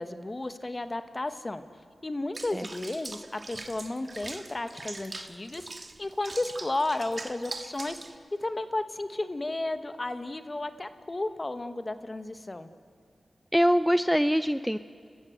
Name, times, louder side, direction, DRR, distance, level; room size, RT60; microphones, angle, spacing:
voice 1, 0.0-1.6 2.0-12.7, left 2 dB, 35° left, 10 dB, 1.2 m, -33 dB
Water / Bathtub (filling or washing), 2.3-8.2, right 2 dB, 40° right, 1.4 m, -42 dB
voice 2, 13.5-14.8, equal, ahead, 12 dB, 0.5 m, -23 dB
30.0 x 14.0 x 7.9 m, 2.1 s
cardioid pair, 60°, 0 cm